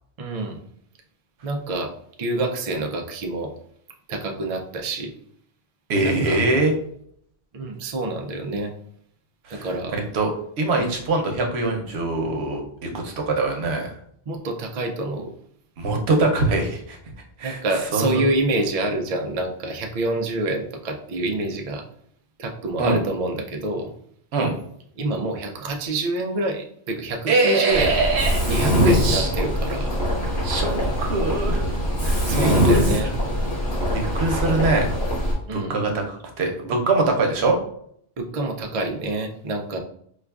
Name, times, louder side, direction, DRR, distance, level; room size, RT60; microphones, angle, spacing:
voice 1, 0.2-0.6 1.4-1.9 2.2-3.5 4.1-5.1 6.0-6.4 7.5-8.7 9.5-10.1 10.7-10.9 14.3-15.3 17.4-21.8 22.4-23.9 25.0-28.0 28.5-29.9 32.3-33.1 35.5-35.7 38.2-39.8, right 2 dB, 50° right, 3 dB, 0.4 m, -27 dB
voice 2, 5.9-6.7 9.5-13.9 15.8-17.0 17.4-17.6 17.9-18.2 22.8-23.0 24.3-24.5 27.3-28.5 28.9-29.3 30.4-30.7 31.0-31.6 32.0-32.8 33.9-34.9 35.5-37.6, right 3 dB, 85° right, 2 dB, 1.0 m, -23 dB
Mechanisms, 27.7-35.3, equal, 70° left, 1.5 m, -22 dB
4.7 x 2.4 x 2.3 m, 0.65 s
omnidirectional pair, 1.1 m